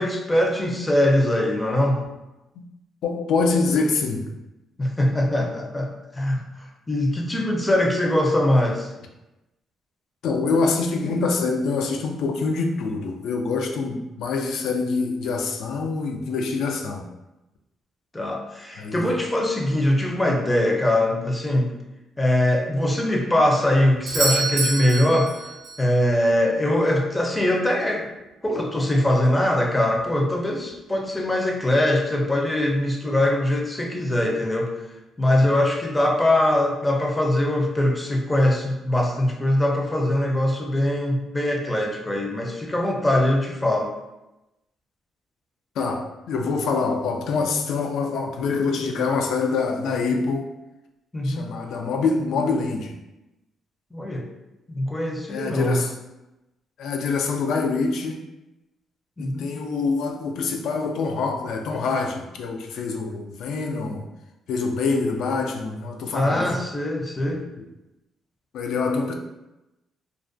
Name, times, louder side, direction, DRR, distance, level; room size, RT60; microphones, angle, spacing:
voice 1, 0.0-2.0 4.8-8.9 18.1-21.7 22.2-25.3 25.8-28.0 28.4-34.7 35.2-43.9 51.1-51.4 53.9-54.3 54.7-55.8 59.2-59.5 66.1-67.4, left 1 dB, 15° left, 1 dB, 0.5 m, -22 dB
voice 2, 3.0-4.3 10.2-17.1 18.8-19.1 45.8-50.5 51.2-53.0 55.3-55.9 56.8-58.2 59.2-64.1 64.5-66.6 68.5-69.1, left 4 dB, 75° left, 3 dB, 0.3 m, -25 dB
Doorbell, 24.1-25.9 30.0-30.1, right 3 dB, 80° right, 0.5 m, -27 dB
2.3 x 2.1 x 2.5 m, 0.97 s
cardioid pair, 90°, 0 cm